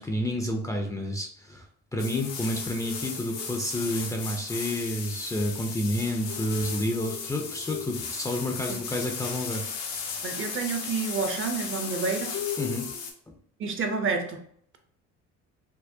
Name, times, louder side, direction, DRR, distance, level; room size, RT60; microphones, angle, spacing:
voice 1, 0.0-1.6 1.9-9.6 10.1-10.2 12.6-12.9, left 1 dB, 10° left, 2 dB, 0.5 m, -30 dB
sound 1, 2.0-13.1, left 6 dB, 75° left, 0.9 m, -35 dB
voice 2, 10.2-12.4 13.6-14.4, right 4 dB, 40° right, 5 dB, 0.7 m, -29 dB
4.5 x 2.1 x 2.6 m, 0.64 s
supercardioid pair, 90°, 31 cm